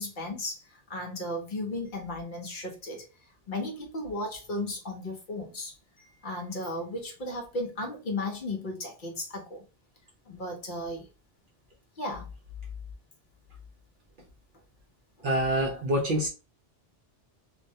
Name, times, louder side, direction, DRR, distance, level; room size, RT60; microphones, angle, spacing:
voice 1, 0.0-9.6 10.3-11.1 12.0-12.3, left 1 dB, 55° left, 0.6 m, -35 dB
voice 2, 15.2-16.3, right 1 dB, 60° right, 0.6 m, -26 dB
2.3 x 2.1 x 2.6 m
omnidirectional pair, 1.2 m